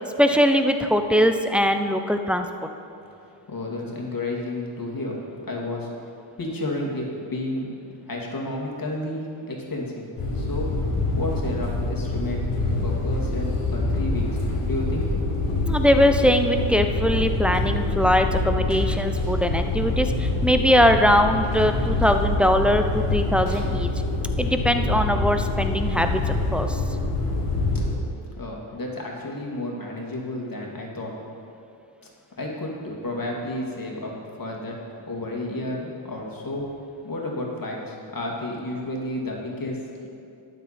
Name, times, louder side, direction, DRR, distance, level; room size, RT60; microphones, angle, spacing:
voice 1, 0.2-2.5 15.7-23.9 24.4-26.8, equal, ahead, 6 dB, 0.7 m, -21 dB
voice 2, 3.5-5.9 6.4-7.8 8.1-10.1 10.3-10.7 11.1-12.4 12.8-15.1 28.4-31.2 32.4-34.8 35.1-36.7 37.0-40.1, left 1 dB, 40° left, -1 dB, 2.5 m, -31 dB
sound 1, 10.2-27.9, left 2 dB, 90° left, 1.7 m, -25 dB
12.5 x 8.9 x 4.4 m, 2.7 s
cardioid pair, 60°, 50 cm